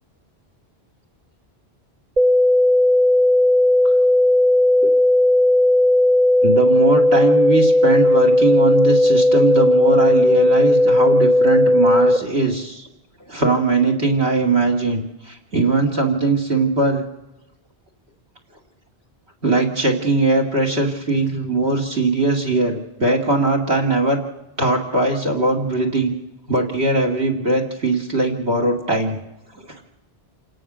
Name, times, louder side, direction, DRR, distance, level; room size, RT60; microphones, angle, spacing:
sound 1, 2.2-12.2, left 1 dB, 45° right, 0.9 m, -15 dB
voice 1, 6.4-12.9 13.3-17.0 19.4-24.2 24.6-26.1 26.5-29.2, right 3 dB, 80° right, 5 dB, 2.8 m, -20 dB
28.0 x 17.5 x 6.3 m, 1.0 s
omnidirectional pair, 1.1 m